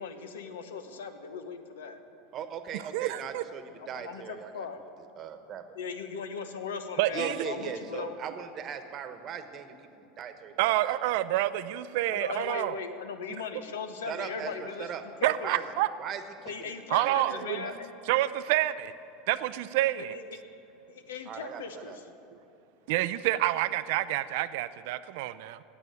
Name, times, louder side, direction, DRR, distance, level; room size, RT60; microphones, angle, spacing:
voice 1, 0.0-2.0 3.7-4.8 5.7-8.1 12.1-14.9 15.2-15.5 16.4-17.9 20.1-20.2 20.9-22.0, left 5 dB, 80° left, 8 dB, 1.0 m, -38 dB
voice 2, 2.3-4.7 5.2-5.7 7.1-11.0 14.1-15.0 15.4-15.7 16.0-17.8 21.3-22.0, right 8 dB, 45° right, 9 dB, 1.1 m, -39 dB
voice 3, 2.9-3.4 7.0-7.4 10.6-12.8 15.2-15.9 16.9-17.6 18.1-18.9 19.3-20.2 22.9-25.6, right 15 dB, 65° right, 14 dB, 0.4 m, -28 dB
9.3 x 8.4 x 9.6 m, 2.9 s
hypercardioid pair, 90°, 0 cm